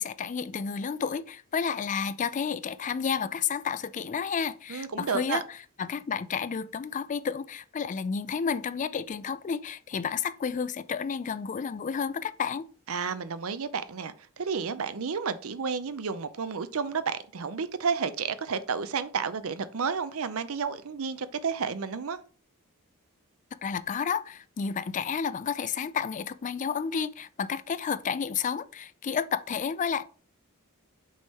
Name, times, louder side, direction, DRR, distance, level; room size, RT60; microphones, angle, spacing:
voice 1, 0.0-5.4 5.8-12.7 23.6-30.0, left 6 dB, 35° left, 0.3 m, -31 dB
voice 2, 4.7-5.4 12.9-22.2, right 5 dB, 65° right, 0.6 m, -31 dB
6.2 x 3.7 x 4.2 m
head